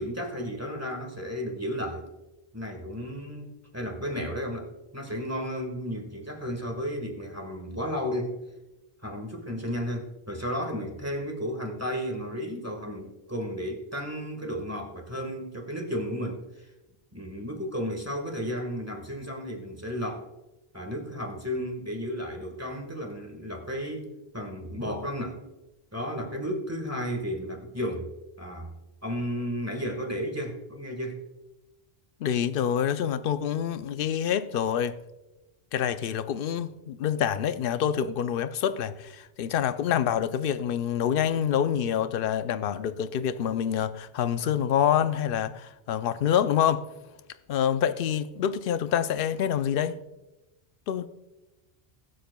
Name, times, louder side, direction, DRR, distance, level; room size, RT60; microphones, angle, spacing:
voice 1, 0.0-2.0 2.5-4.7 4.9-8.4 9.0-16.7 17.1-20.3 20.7-25.4 25.9-28.1 28.4-28.7 29.0-31.2, equal, 15° right, 1.5 m, -33 dB
voice 2, 32.2-35.0 35.7-46.8 47.5-50.0 50.9-51.1, left 9 dB, 65° left, 0.7 m, -26 dB
21.0 x 7.6 x 2.2 m
omnidirectional pair, 1.1 m